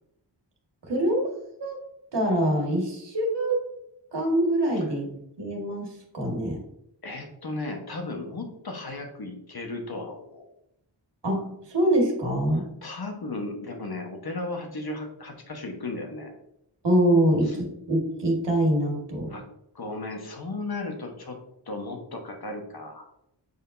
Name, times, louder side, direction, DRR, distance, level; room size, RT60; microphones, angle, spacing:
voice 1, 0.8-1.3 1.6-1.8 2.1-3.6 4.1-6.6 11.2-12.7 16.8-19.3, right 1 dB, 60° right, 0 dB, 1.8 m, -24 dB
voice 2, 7.0-10.5 12.5-16.3 17.4-17.5 19.3-19.4 19.7-21.4 21.7-23.1, left 2 dB, 55° left, 3 dB, 1.3 m, -35 dB
7.9 x 5.0 x 2.7 m, 0.79 s
wide cardioid pair, 85°, 46 cm